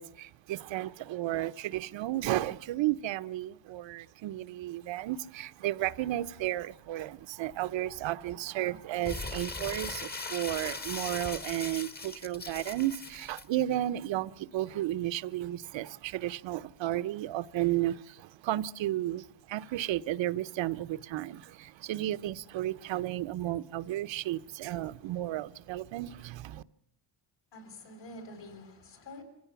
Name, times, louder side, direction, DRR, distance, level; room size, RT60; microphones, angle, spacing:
voice 1, 0.0-26.6, right 14 dB, 75° right, 0.8 m, -33 dB
Crumpling crinkling, 9.0-13.4, left 3 dB, 20° left, 1.1 m, -39 dB
voice 2, 27.5-29.2, left 1 dB, 65° left, 6.4 m, -47 dB
26.0 x 16.0 x 6.9 m
cardioid pair, 130°, 46 cm